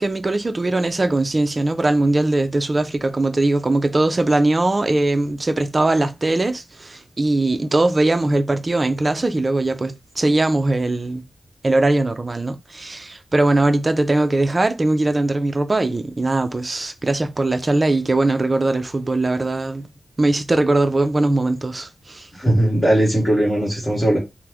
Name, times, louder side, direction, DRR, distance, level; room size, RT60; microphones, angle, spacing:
voice 1, 0.0-11.2 11.6-19.8 20.2-22.3, right 2 dB, 30° right, 0.4 m, -20 dB
voice 2, 22.3-24.2, right 1 dB, 15° left, 1.1 m, -18 dB
2.9 x 2.0 x 3.4 m
wide cardioid pair, 150°, 0 cm